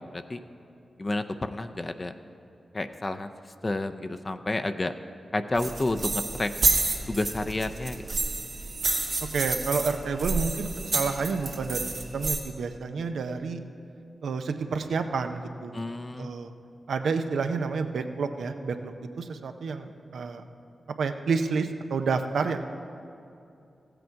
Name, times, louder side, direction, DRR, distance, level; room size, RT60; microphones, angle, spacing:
voice 1, 1.0-2.1 2.7-3.3 3.6-4.9 5.3-6.5 7.1-8.0 15.7-16.3, left 2 dB, 40° left, 7 dB, 0.5 m, -30 dB
sound 1, 5.6-12.4, right 3 dB, 65° right, 1.4 m, -29 dB
voice 2, 9.3-11.9 12.1-13.6 14.2-15.8 16.2-16.5 16.9-18.9 19.2-20.4 21.0-22.6, right 4 dB, 85° right, 7 dB, 0.6 m, -29 dB
15.0 x 7.8 x 4.6 m, 2.7 s
cardioid pair, 40°, 0 cm